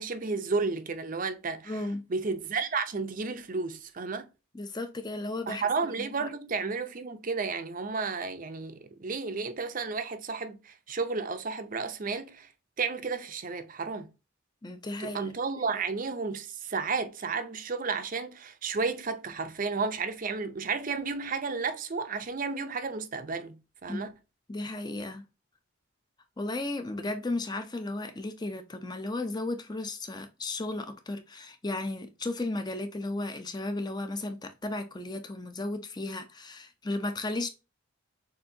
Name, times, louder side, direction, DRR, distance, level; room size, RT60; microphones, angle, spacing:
voice 1, 0.0-1.8 2.1-4.3 5.5-12.5 12.8-14.1 15.0-24.1, right 4 dB, 40° right, 0.6 m, -32 dB
voice 2, 1.6-2.0 4.5-5.6 6.0-6.3 14.6-15.3 23.9-24.0 24.5-25.2 26.4-37.5, left 2 dB, 20° left, 0.6 m, -34 dB
6.7 x 2.7 x 2.7 m
head